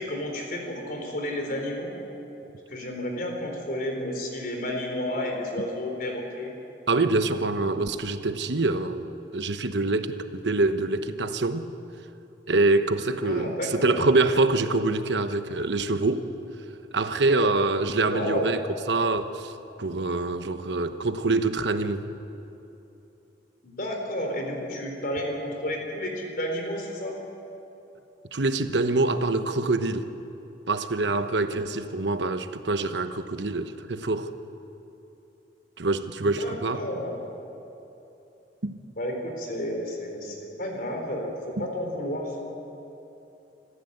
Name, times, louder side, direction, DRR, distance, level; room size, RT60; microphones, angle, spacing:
voice 1, 0.0-1.9 2.7-6.5 13.2-14.0 18.1-18.6 23.6-27.2 36.2-37.2 39.0-42.4, left 1 dB, 55° left, 2 dB, 4.2 m, -31 dB
voice 2, 6.9-11.7 12.5-16.3 16.9-19.5 19.8-22.0 28.3-30.1 30.7-34.3 35.8-36.9 38.6-38.8 41.6-41.7, right 2 dB, 80° right, 9 dB, 1.1 m, -25 dB
25.5 x 15.0 x 8.1 m, 2.9 s
head